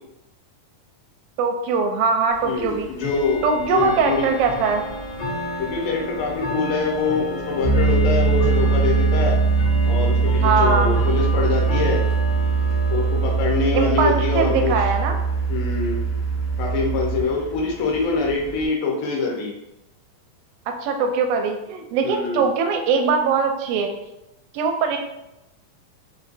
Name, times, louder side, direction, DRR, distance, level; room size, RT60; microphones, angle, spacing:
voice 1, 1.4-2.9 3.4-4.8 10.4-11.0 13.7-15.2 20.8-23.9 24.5-25.0, right 5 dB, 85° right, 4 dB, 2.3 m, -21 dB
Bell / Tick-tock, 2.3-18.7, left 2 dB, 75° left, 1.4 m, -33 dB
voice 2, 2.4-3.4 3.7-4.3 5.6-9.4 9.9-12.0 12.9-14.8 15.5-16.0 16.6-19.5 22.0-22.5, left 4 dB, 90° left, -2 dB, 2.4 m, -24 dB
Piano, 7.6-17.2, right 4 dB, 65° right, 0.7 m, -21 dB
5.8 x 2.5 x 2.6 m, 0.89 s
omnidirectional pair, 4.0 m